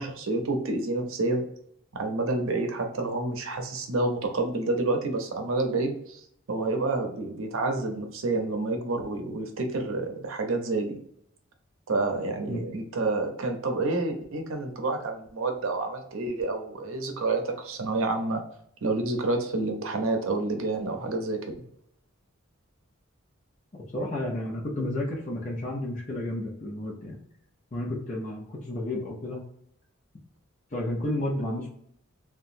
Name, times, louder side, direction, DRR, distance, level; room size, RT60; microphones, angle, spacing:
voice 1, 0.0-1.4 1.9-11.0 11.9-18.4 18.8-21.6, right 2 dB, 75° right, 4 dB, 0.6 m, -29 dB
voice 2, 23.9-27.2 27.7-29.4 30.7-31.7, left 1 dB, 35° left, -4 dB, 0.6 m, -31 dB
2.8 x 2.3 x 2.5 m, 0.69 s
head